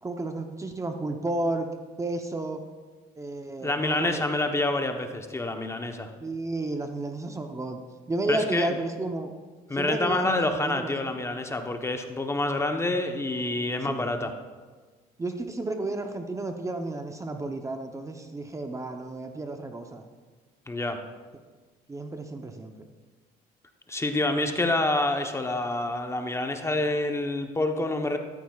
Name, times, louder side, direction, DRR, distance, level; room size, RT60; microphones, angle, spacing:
voice 1, 0.0-1.7 2.0-2.6 3.2-4.2 6.2-7.8 8.1-9.3 9.7-11.1 13.8-14.1 15.2-20.0 21.9-22.9, right 2 dB, 20° right, 5 dB, 0.8 m, -32 dB
voice 2, 3.6-6.1 8.3-8.7 9.7-14.3 20.7-21.0 23.9-28.2, left 2 dB, 15° left, 5 dB, 0.9 m, -27 dB
14.0 x 13.0 x 2.4 m, 1.4 s
cardioid pair, 110°, 17 cm